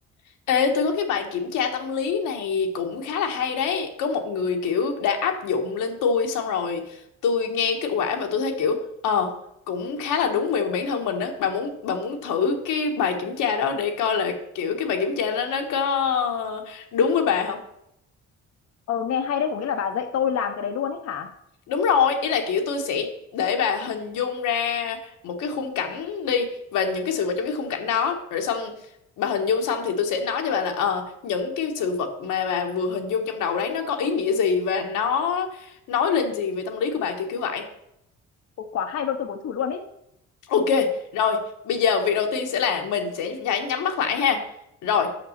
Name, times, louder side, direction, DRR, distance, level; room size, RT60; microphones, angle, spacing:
voice 1, 0.5-9.3 9.7-17.6 21.7-25.0 25.2-28.7 29.2-37.7 40.5-44.4 44.8-45.1, left 6 dB, 90° left, 3 dB, 1.3 m, -25 dB
voice 2, 18.9-21.3 38.6-39.8, left 8 dB, 60° left, 5 dB, 0.7 m, -27 dB
6.0 x 5.8 x 6.5 m, 0.79 s
cardioid pair, 90°, 30 cm